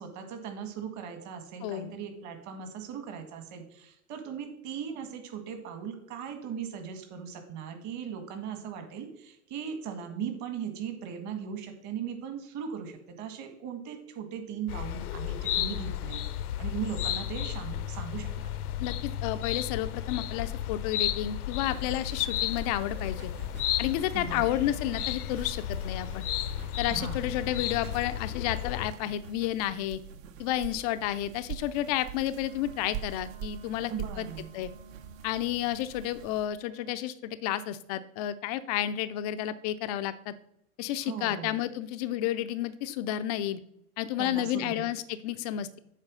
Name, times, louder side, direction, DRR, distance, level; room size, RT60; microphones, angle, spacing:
voice 1, 0.0-16.2 16.6-18.5 24.1-24.5 26.9-27.2 33.9-34.5 41.1-41.5 44.2-44.9, right 7 dB, 40° right, 6 dB, 1.9 m, -38 dB
voice 2, 1.6-1.9 18.8-23.3 23.8-26.2 26.8-30.0 30.4-33.9 34.2-34.3 34.5-34.7 35.2-40.3 40.8-43.6 44.0-45.8, left 12 dB, 30° left, 12 dB, 0.3 m, -31 dB
sound 1, 14.7-28.9, left 12 dB, 80° left, 0.6 m, -33 dB
sound 2, 21.6-36.5, right 8 dB, 60° right, 1.1 m, -45 dB
Wind instrument woodwind instrument, 32.2-37.0, right 3 dB, 80° right, 1.6 m, -53 dB
7.4 x 4.6 x 6.3 m, 0.74 s
hypercardioid pair, 105°, 45 cm